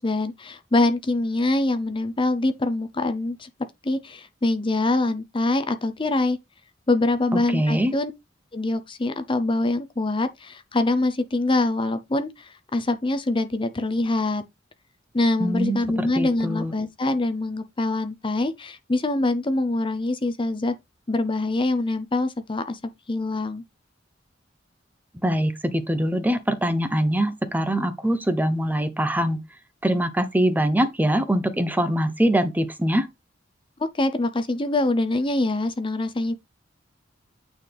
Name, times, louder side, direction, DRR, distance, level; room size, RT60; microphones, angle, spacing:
voice 1, 0.0-3.5 3.8-6.4 6.9-8.1 8.5-14.4 15.1-20.7 21.1-22.8 23.1-23.6 33.8-36.3, left 2 dB, 25° left, 0.7 m, -24 dB
voice 2, 7.3-7.9 15.4-16.7 25.1-29.4 29.8-33.1, equal, 10° right, 0.7 m, -23 dB
9.1 x 4.1 x 3.4 m
head